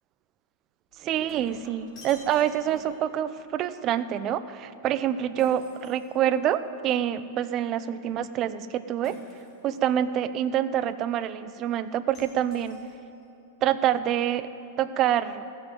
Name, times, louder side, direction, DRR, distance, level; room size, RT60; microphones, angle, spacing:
Shatter, 0.9-3.1 5.4-6.7 9.0-9.8 12.1-13.2, left 1 dB, 30° left, 3.6 m, -51 dB
voice 1, 1.0-9.2 9.6-12.8 13.6-14.5 14.8-15.4, right 10 dB, 40° right, 14 dB, 0.6 m, -26 dB
15.0 x 7.1 x 9.0 m, 2.8 s
hypercardioid pair, 115°, 0 cm